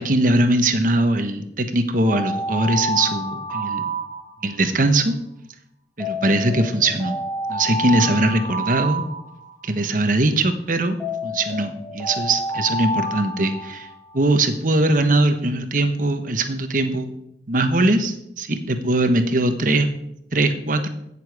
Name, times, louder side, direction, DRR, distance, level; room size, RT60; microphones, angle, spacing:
voice 1, 0.0-3.8 4.4-5.1 6.0-7.2 7.5-9.0 9.6-13.9 14.1-17.2 17.5-19.9 20.3-20.9, right 2 dB, 50° right, 8 dB, 1.2 m, -21 dB
Alarm, 2.0-4.7 6.0-9.7 11.0-14.2, equal, 5° left, 5.8 m, -28 dB
16.5 x 7.0 x 4.9 m, 0.78 s
head